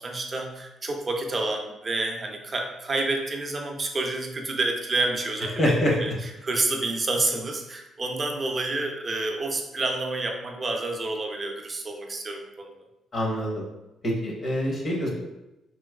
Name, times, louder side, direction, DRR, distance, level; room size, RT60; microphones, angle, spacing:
voice 1, 0.0-12.7, right 2 dB, 35° right, 2 dB, 0.5 m, -29 dB
voice 2, 5.6-6.0 13.1-13.6 14.0-15.1, left 1 dB, 45° left, -2 dB, 0.9 m, -25 dB
3.0 x 2.7 x 2.3 m, 0.96 s
cardioid pair, 90°, 0 cm